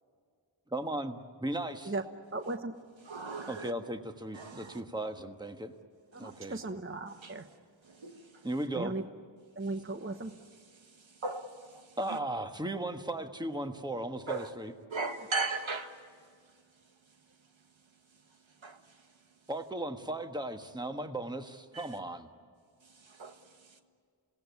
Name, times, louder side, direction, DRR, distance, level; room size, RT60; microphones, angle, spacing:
voice 1, 0.7-1.9 3.5-5.7 6.2-6.6 8.4-9.0 12.0-14.7 19.5-22.3, right 1 dB, 10° right, 6 dB, 1.4 m, -36 dB
voice 2, 2.3-2.7 6.2-7.4 8.8-9.0 9.6-10.3, right 2 dB, 25° right, 8 dB, 1.0 m, -36 dB
voice 3, 3.0-3.7 4.3-4.8 6.3-6.4 7.2-7.3 8.0-8.1 11.2-12.2 14.3-14.5 14.9-15.9 18.6-18.8 21.7-21.9 23.2-23.3, right 3 dB, 75° right, 6 dB, 1.8 m, -36 dB
28.5 x 17.5 x 9.5 m, 2.1 s
wide cardioid pair, 90°, 47 cm